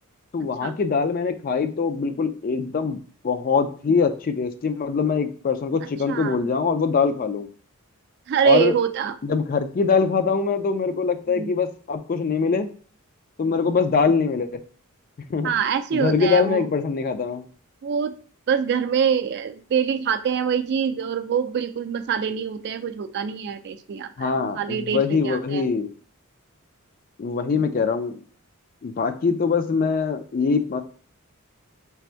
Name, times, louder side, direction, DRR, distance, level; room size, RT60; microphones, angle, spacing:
voice 1, 0.3-7.5 8.4-8.7 9.2-12.7 13.4-14.5 15.3-15.5 15.9-17.4 24.2-25.9 27.2-28.2 28.8-30.8, left 5 dB, 40° left, 9 dB, 0.3 m, -23 dB
voice 2, 6.1-6.4 8.3-9.2 11.3-11.5 15.4-16.7 17.8-18.1 18.5-25.6, right 7 dB, 50° right, 10 dB, 0.3 m, -25 dB
3.4 x 2.5 x 4.3 m, 0.43 s
head